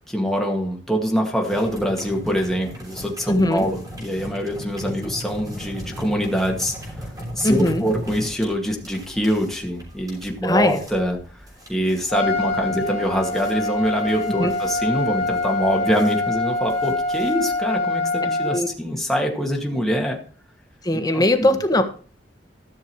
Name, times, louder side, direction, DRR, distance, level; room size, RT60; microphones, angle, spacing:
voice 1, 0.1-6.7 7.4-11.2 11.7-20.2 20.9-21.6, equal, ahead, 0 dB, 2.1 m, -24 dB
sound 1, 1.4-17.7, equal, 20° right, 5.4 m, -37 dB
voice 2, 3.3-3.7 7.4-7.8 10.4-10.8 14.2-14.5 18.5-18.7 20.8-21.8, left 1 dB, 20° left, 6 dB, 1.3 m, -19 dB
Trumpet, 12.1-18.6, left 2 dB, 40° left, 2.2 m, -25 dB
13.5 x 6.6 x 4.7 m, 0.42 s
head